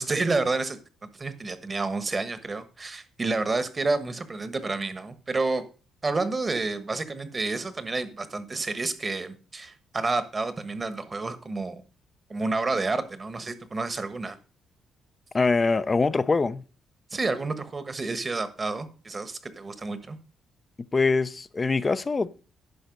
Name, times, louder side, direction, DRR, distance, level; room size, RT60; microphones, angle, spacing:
voice 1, 0.0-5.6 6.0-11.8 12.3-14.4 17.1-20.2, right 3 dB, 30° right, 1.3 m, -29 dB
voice 2, 15.3-16.6 20.9-22.3, left 4 dB, 30° left, 0.6 m, -23 dB
10.5 x 5.6 x 5.3 m
cardioid pair, 90°, 0 cm